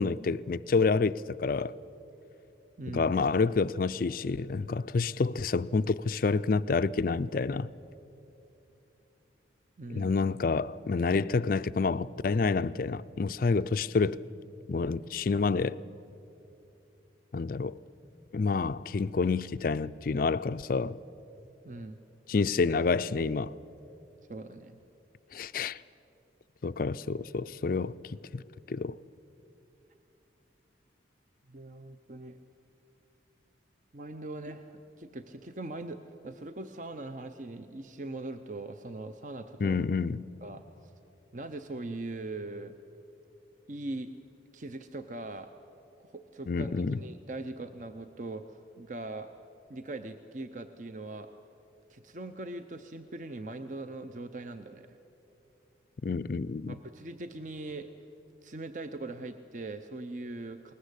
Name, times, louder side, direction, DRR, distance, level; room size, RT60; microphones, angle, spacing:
voice 1, 0.0-1.7 2.9-7.7 9.9-14.2 14.7-15.8 17.3-17.8 18.3-21.0 22.3-23.5 25.3-25.8 26.6-28.4 28.7-29.0 39.6-40.2 46.5-47.0 56.0-56.8, left 4 dB, 45° left, 0.4 m, -28 dB
voice 2, 2.8-3.1 9.8-10.1 21.6-22.0 24.3-24.8 31.5-32.4 33.9-39.8 40.4-40.9 41.3-42.8 43.7-44.1 44.5-45.5 46.0-49.3 49.7-51.3 51.9-54.9 56.7-57.9 58.4-60.7, right 2 dB, 40° right, 0.7 m, -41 dB
21.0 x 19.5 x 8.3 m
head